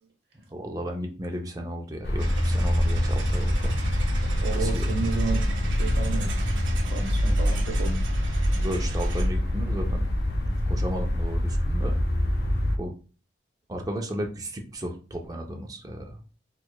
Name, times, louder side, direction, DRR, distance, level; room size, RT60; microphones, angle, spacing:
voice 1, 0.5-3.8 4.5-4.8 8.5-10.0 10.5-12.0 12.8-12.9 13.7-16.2, equal, 20° right, 2 dB, 0.5 m, -34 dB
sound 1, 2.0-12.8, equal, 55° left, 0.5 m, -25 dB
sound 2, 2.2-9.3, right 4 dB, 85° right, 0.6 m, -40 dB
voice 2, 4.4-6.6 6.8-8.2, right 3 dB, 60° right, 1 dB, 0.9 m, -32 dB
4.6 x 2.4 x 2.2 m, 0.37 s
head